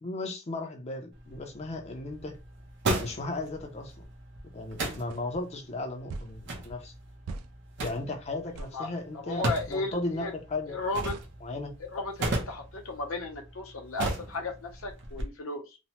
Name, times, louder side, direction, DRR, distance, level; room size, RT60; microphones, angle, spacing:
voice 1, 0.0-2.4 3.0-4.1 4.5-6.9 7.8-10.7 11.4-11.7, left 2 dB, 30° left, 0.5 m, -36 dB
sound 1, 1.1-15.2, right 2 dB, 60° right, 0.7 m, -37 dB
sound 2, 5.1-5.2 6.1-6.4 7.3-7.5 8.5-8.8 9.5-9.7 11.1-11.3, right 3 dB, 85° right, 0.4 m, -40 dB
voice 2, 8.7-10.3 10.7-11.1 11.8-15.8, left 2 dB, 70° left, 0.7 m, -35 dB
3.0 x 2.1 x 2.8 m
head